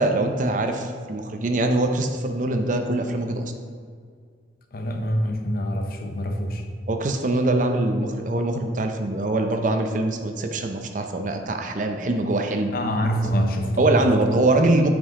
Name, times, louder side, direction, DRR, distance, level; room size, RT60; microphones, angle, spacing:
voice 1, 0.0-3.5 6.9-12.8 13.8-14.9, right 2 dB, 45° right, 5 dB, 0.6 m, -23 dB
voice 2, 4.7-6.6 12.7-14.2, equal, 55° left, 4 dB, 0.7 m, -25 dB
8.2 x 5.3 x 3.7 m, 2.1 s
head